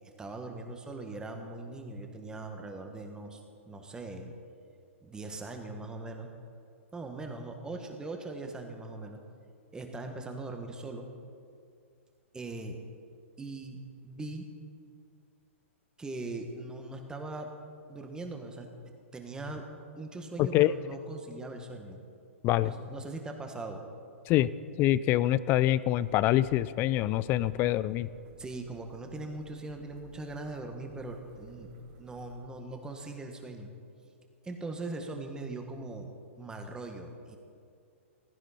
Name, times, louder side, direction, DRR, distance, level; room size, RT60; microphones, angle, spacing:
voice 1, 0.0-4.3 5.0-6.3 6.9-9.2 9.7-11.1 12.3-12.8 13.4-14.5 16.0-17.5 17.9-18.7 19.1-19.7 19.9-22.0 22.6-23.8 28.4-31.7 32.0-33.7 34.4-37.4, right 2 dB, 10° right, 4 dB, 1.6 m, -40 dB
voice 2, 20.4-20.7 22.4-22.7 24.3-24.5 24.8-28.1, left 14 dB, 30° left, 17 dB, 0.4 m, -25 dB
sound 1, 25.9-32.5, right 3 dB, 45° right, 2.0 m, -54 dB
16.0 x 14.5 x 4.3 m, 2.4 s
hypercardioid pair, 125°, 7 cm